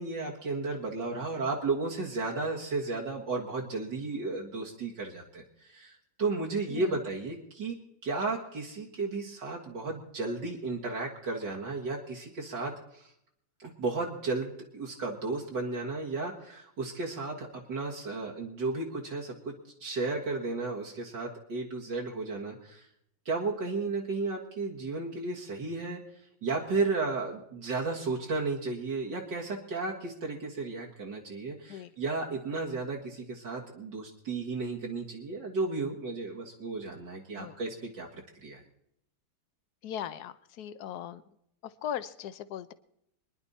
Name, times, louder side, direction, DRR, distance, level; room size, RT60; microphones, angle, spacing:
voice 1, 0.0-5.9 6.2-7.8 8.0-13.1 13.6-19.5 19.8-22.8 23.3-26.0 26.4-38.6, right 3 dB, 65° right, -2 dB, 2.3 m, -34 dB
voice 2, 6.7-7.0 31.7-31.9 37.3-37.6 39.8-41.2 41.6-42.7, left 10 dB, 65° left, 14 dB, 1.2 m, -39 dB
24.5 x 10.5 x 4.1 m, 0.75 s
omnidirectional pair, 2.1 m